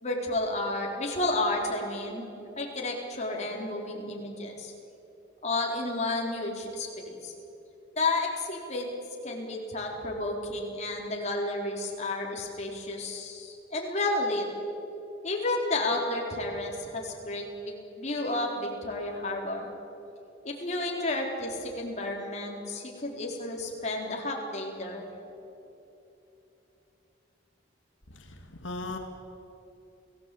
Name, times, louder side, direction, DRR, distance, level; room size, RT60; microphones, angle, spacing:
voice 1, 0.0-2.3 2.6-4.7 5.4-7.3 8.0-8.9 9.2-14.4 15.2-19.7 20.4-25.0, left 2 dB, 35° left, 0 dB, 4.3 m, -31 dB
voice 2, 28.1-29.0, left 2 dB, 80° left, 3 dB, 2.1 m, -38 dB
29.0 x 17.5 x 8.7 m, 3.0 s
head